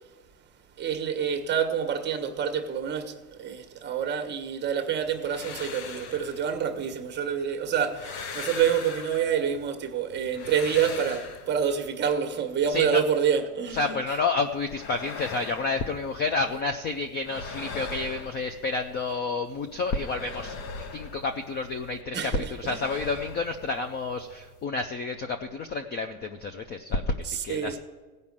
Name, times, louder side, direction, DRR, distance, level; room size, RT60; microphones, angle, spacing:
voice 1, 0.8-14.0 22.1-22.8 27.2-27.8, right 7 dB, 25° right, 1.2 m, -27 dB
sound 1, 5.1-7.2 7.7-9.7 10.1-12.0 14.4-16.6 16.9-19.1 19.4-22.0 22.3-24.6, left 5 dB, 65° left, 1.2 m, -41 dB
voice 2, 12.7-13.0 13.7-27.8, left 3 dB, 25° left, 0.4 m, -30 dB
16.0 x 5.4 x 7.3 m
supercardioid pair, 135°, 45 cm